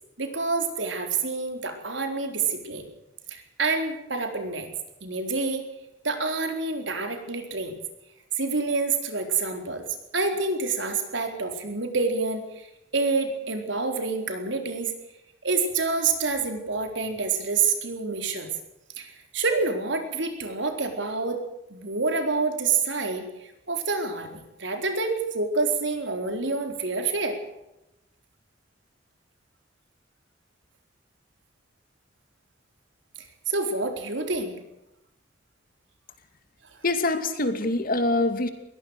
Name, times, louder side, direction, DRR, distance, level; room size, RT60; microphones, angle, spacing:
voice 1, 0.2-2.8 3.3-4.7 5.0-5.6 6.0-7.8 8.3-9.8 10.1-12.7 12.9-14.9 15.4-18.5 19.0-21.4 21.7-27.4 33.2-34.6, right 4 dB, 75° right, 5 dB, 4.3 m, -27 dB
voice 2, 36.8-38.5, left 2 dB, 50° left, 8 dB, 2.6 m, -24 dB
21.5 x 18.0 x 6.6 m, 0.89 s
head